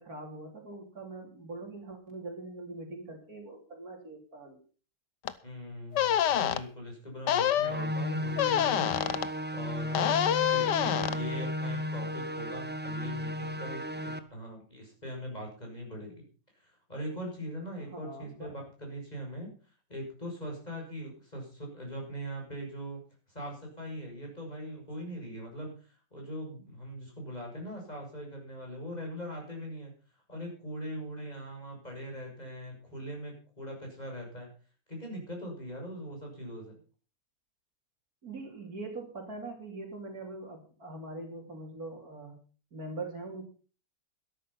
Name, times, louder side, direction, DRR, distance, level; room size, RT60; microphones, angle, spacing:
voice 1, 0.0-4.6 17.8-18.5 38.2-42.4 42.7-43.5, right 2 dB, 60° right, 2 dB, 3.8 m, -42 dB
sound 1, 5.3-5.4 5.9-6.6 7.3-7.7 8.4-9.3 9.9-11.2, left 10 dB, 85° left, 1.5 m, -26 dB
voice 2, 5.4-16.3 16.5-23.0 23.3-29.9 30.3-34.5 34.9-36.8, equal, 25° left, 0 dB, 6.9 m, -41 dB
sound 2, 7.6-14.2, left 1 dB, 10° right, 0.7 m, -34 dB
13.0 x 12.5 x 5.7 m, 0.38 s
omnidirectional pair, 1.8 m